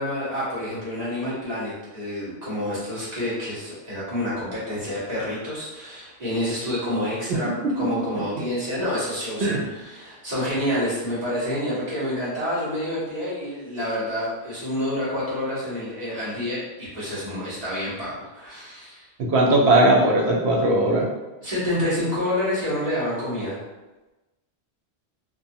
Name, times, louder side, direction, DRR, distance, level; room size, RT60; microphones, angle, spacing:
voice 1, 0.0-19.1 21.4-23.6, left 1 dB, 40° right, -10 dB, 1.2 m, -28 dB
voice 2, 19.2-21.1, right 1 dB, 80° right, -1 dB, 0.8 m, -18 dB
2.5 x 2.3 x 2.6 m, 1.1 s
omnidirectional pair, 1.1 m